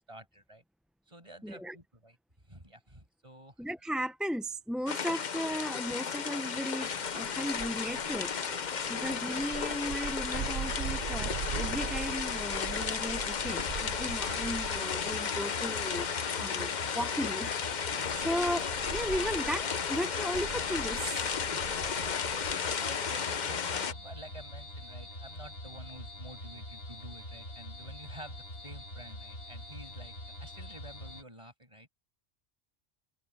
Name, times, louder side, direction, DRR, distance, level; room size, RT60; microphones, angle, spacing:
voice 1, 0.1-0.6 1.1-2.2 2.5-3.6 17.9-18.3 21.5-30.1 30.4-31.9, right 1 dB, 30° right, 7.2 m, -50 dB
voice 2, 1.4-1.8 3.6-8.3 8.6-21.3, equal, ahead, 0.6 m, -36 dB
sound 1, 4.9-23.9, left 6 dB, 50° left, 0.9 m, -34 dB
sound 2, 6.8-15.3 15.6-16.1 16.6-16.7 17.6-22.5, right 7 dB, 70° right, 1.0 m, -42 dB
sound 3, 13.4-31.2, left 1 dB, 65° left, 2.8 m, -44 dB
omnidirectional pair, 1.1 m